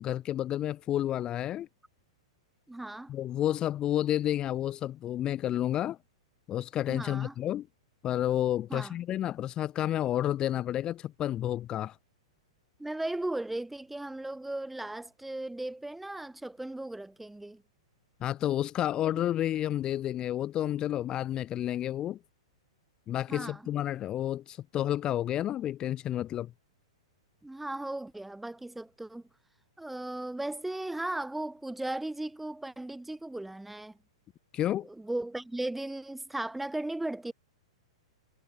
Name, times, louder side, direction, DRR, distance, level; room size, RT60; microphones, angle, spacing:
voice 1, 0.0-1.7 3.1-6.0 6.5-7.7 8.0-12.0 18.2-22.2 23.1-26.5 34.5-34.9, left 12 dB, 25° left, 0.7 m, -30 dB
voice 2, 2.7-3.1 6.9-7.3 8.7-9.0 12.8-17.6 19.1-19.2 23.3-23.6 27.4-29.3 29.8-34.0 34.8-37.3, right 1 dB, 5° right, 1.0 m, -36 dB
figure-of-eight pair, 105°, 3 cm